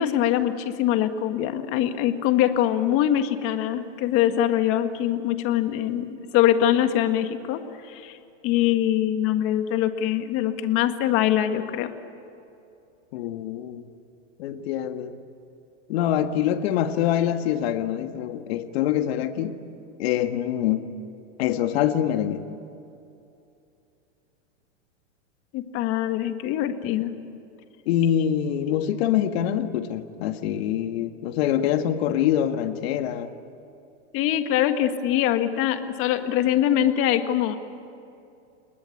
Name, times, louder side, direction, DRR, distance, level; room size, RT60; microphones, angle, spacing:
voice 1, 0.0-7.6 7.9-8.2 8.4-11.9 25.5-27.1 34.1-37.6, left 11 dB, 35° left, 8 dB, 1.7 m, -23 dB
voice 2, 13.1-13.8 14.4-15.2 15.9-19.6 20.0-20.9 21.4-22.4 27.9-33.3, left 10 dB, 55° left, 8 dB, 1.9 m, -25 dB
29.5 x 20.0 x 8.6 m, 2.7 s
supercardioid pair, 145°, 36 cm